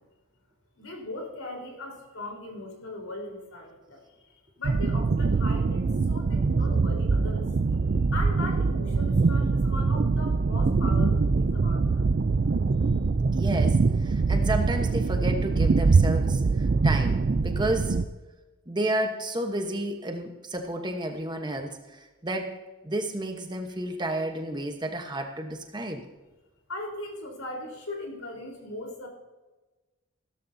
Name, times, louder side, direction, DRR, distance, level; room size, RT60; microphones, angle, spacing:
voice 1, 0.8-7.5 8.1-12.0 26.7-29.1, left 2 dB, 90° left, 1 dB, 4.0 m, -39 dB
sound 1, 4.6-18.1, right 4 dB, 45° right, 0.4 m, -23 dB
voice 2, 13.3-18.0 18.7-26.0, right 1 dB, 20° right, 5 dB, 1.1 m, -31 dB
16.5 x 13.0 x 2.8 m, 1.2 s
head